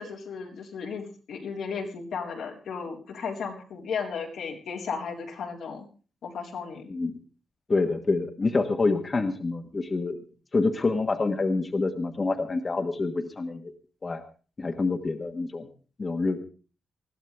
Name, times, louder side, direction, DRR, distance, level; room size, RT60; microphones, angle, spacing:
voice 1, 0.0-5.9 6.2-6.9, left 5 dB, 90° left, -1 dB, 3.9 m, -35 dB
voice 2, 7.7-10.2 10.5-13.7 14.0-14.2 14.6-15.7 16.0-16.4, left 3 dB, 35° left, 5 dB, 1.4 m, -27 dB
20.5 x 14.5 x 3.5 m, 0.36 s
cardioid pair, 110°, 0 cm